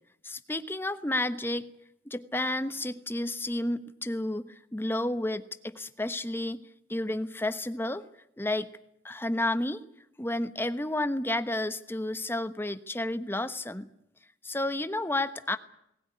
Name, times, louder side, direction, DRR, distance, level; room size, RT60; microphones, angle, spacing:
voice 1, 0.2-1.7 2.1-6.6 6.9-8.1 8.4-8.7 9.0-9.8 10.2-13.9 14.4-15.6, left 1 dB, 10° left, 11 dB, 1.1 m, -31 dB
19.5 x 17.5 x 9.8 m, 0.77 s
head